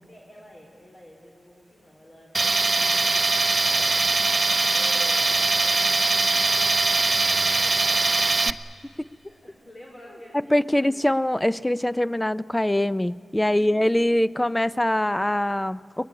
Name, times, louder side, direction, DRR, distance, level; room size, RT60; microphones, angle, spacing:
voice 1, 0.1-8.1 9.3-11.2 13.4-14.2, left 1 dB, 50° left, -1 dB, 4.0 m, -49 dB
Tools, 2.3-8.5, right 3 dB, 45° right, 0.7 m, -21 dB
voice 2, 10.5-16.1, left 1 dB, 15° left, 18 dB, 0.5 m, -23 dB
23.5 x 19.0 x 9.7 m, 2.6 s
cardioid pair, 45°, 0 cm